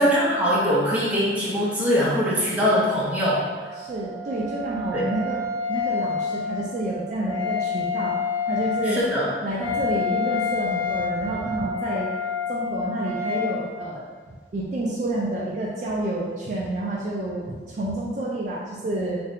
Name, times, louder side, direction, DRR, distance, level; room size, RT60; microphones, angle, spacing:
voice 1, 0.0-3.4 4.9-5.0 8.8-9.3, equal, 10° right, -8 dB, 0.6 m, -22 dB
Wind instrument woodwind instrument, 3.5-13.5, left 5 dB, 75° left, 0.9 m, -29 dB
voice 2, 3.8-5.4 5.7-8.2 8.5-9.0 9.4-12.1 12.5-19.2, right 1 dB, 40° right, -5 dB, 0.3 m, -29 dB
2.7 x 2.5 x 3.2 m, 1.5 s
head